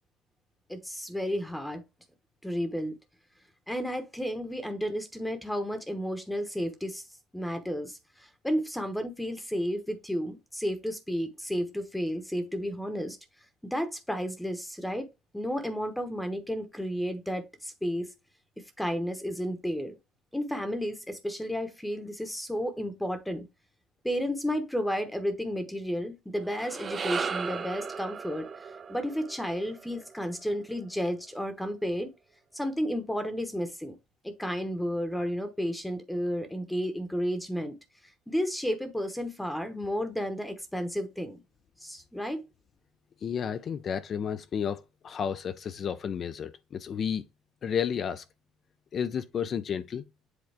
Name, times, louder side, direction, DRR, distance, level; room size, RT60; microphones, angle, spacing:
voice 1, 0.7-1.8 2.4-2.9 3.7-7.0 7.3-13.2 13.6-15.1 15.3-18.1 18.8-20.0 20.3-23.5 24.0-32.1 32.5-34.0 34.2-37.8 38.0-41.4 41.8-42.4, equal, 5° left, 1.0 m, -32 dB
sound 1, 26.4-30.8, right 5 dB, 30° right, 0.5 m, -37 dB
voice 2, 43.2-47.2 47.6-48.2 48.9-50.0, left 7 dB, 40° left, 0.5 m, -32 dB
7.9 x 3.8 x 3.4 m
cardioid pair, 120°, 0 cm